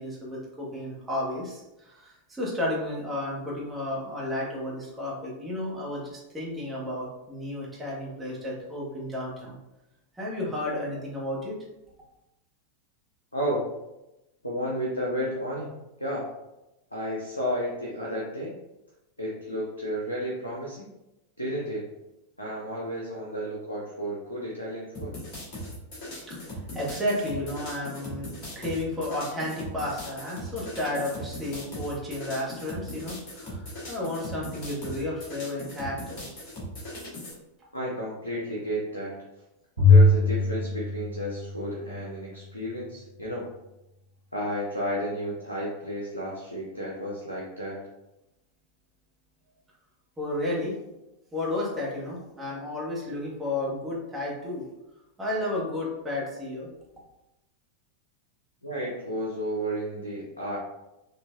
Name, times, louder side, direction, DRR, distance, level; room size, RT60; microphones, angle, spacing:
voice 1, 0.0-9.6 10.1-11.6 26.1-36.2 50.2-50.7 51.3-54.6 55.2-56.7, left 1 dB, 10° right, -5 dB, 1.1 m, -32 dB
voice 2, 13.3-13.7 14.4-15.7 16.0-16.3 16.9-18.5 19.2-20.9 21.4-21.9 22.4-25.2 37.7-39.2 39.9-43.5 44.3-47.8 58.6-60.6, equal, 85° left, -4 dB, 0.6 m, -32 dB
sound 1, 24.9-37.3, equal, 40° left, 1.4 m, -39 dB
Bowed string instrument, 39.8-42.2, left 3 dB, 85° right, 1.1 m, -21 dB
3.9 x 2.5 x 2.4 m, 0.95 s
figure-of-eight pair, 90°, 0 cm